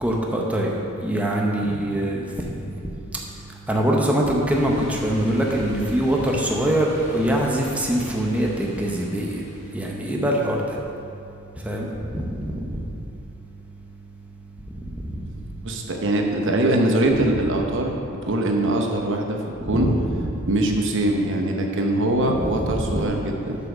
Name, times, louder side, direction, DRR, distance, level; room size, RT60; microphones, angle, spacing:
voice 1, 0.0-0.7 1.0-2.3 3.7-9.4 9.7-10.6 11.6-12.6 15.2-15.3 19.7-20.0 22.3-23.1, right 1 dB, 5° right, -2 dB, 0.8 m, -23 dB
voice 2, 1.6-2.0 15.6-17.9 18.3-19.4 19.7-19.9 20.5-23.6, right 1 dB, 60° right, 2 dB, 0.9 m, -22 dB
sound 1, 4.5-9.7, left 1 dB, 30° left, 2.0 m, -39 dB
7.8 x 5.7 x 6.2 m, 2.7 s
head